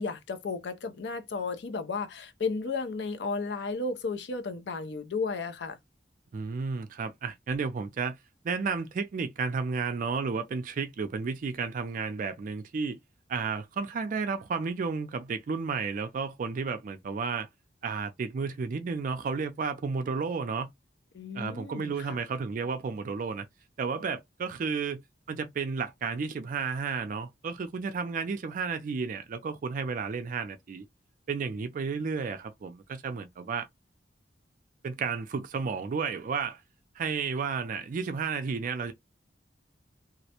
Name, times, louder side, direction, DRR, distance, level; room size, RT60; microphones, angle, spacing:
voice 1, 0.0-5.8 21.1-22.2, left 4 dB, 70° left, 0.5 m, -33 dB
voice 2, 6.3-8.2 8.4-13.0 13.3-17.5 17.8-20.7 21.3-23.5 23.8-25.0 25.3-30.9 31.3-33.7 34.8-36.6 37.0-38.9, right 5 dB, 45° right, 0.3 m, -32 dB
2.3 x 2.1 x 2.8 m
head